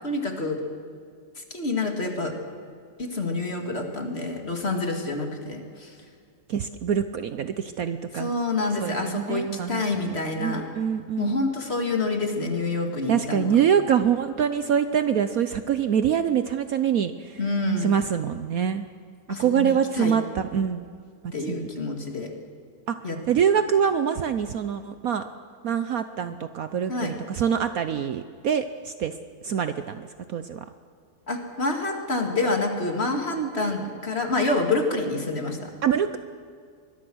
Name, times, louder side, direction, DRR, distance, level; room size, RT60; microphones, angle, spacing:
voice 1, 0.0-0.6 1.4-2.3 3.0-5.9 8.1-10.6 11.2-13.6 17.4-17.9 19.3-20.2 21.3-22.3 23.0-23.2 26.9-27.1 31.3-35.7, left 2 dB, 35° left, 3 dB, 2.5 m, -27 dB
voice 2, 6.5-8.3 8.8-11.3 13.1-17.4 17.8-18.9 19.4-20.9 21.2-21.7 22.9-23.0 23.3-25.3 25.6-29.1 29.4-30.6 33.3-33.7 35.8-36.2, right 8 dB, 60° right, 10 dB, 1.1 m, -25 dB
24.0 x 21.5 x 6.3 m, 2.2 s
omnidirectional pair, 1.9 m